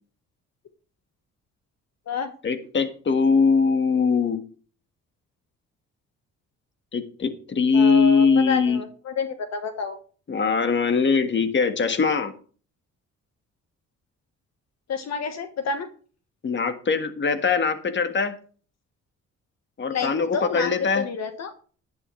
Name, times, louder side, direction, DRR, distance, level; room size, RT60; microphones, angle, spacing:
voice 1, 2.4-4.4 6.9-8.8 10.3-12.3 16.4-18.3 19.8-21.1, left 5 dB, 40° left, 8 dB, 1.7 m, -21 dB
voice 2, 7.7-10.0 14.9-15.9 19.9-21.5, left 5 dB, 60° left, 8 dB, 1.4 m, -29 dB
11.0 x 10.5 x 3.2 m, 0.41 s
cardioid pair, 90°, 30 cm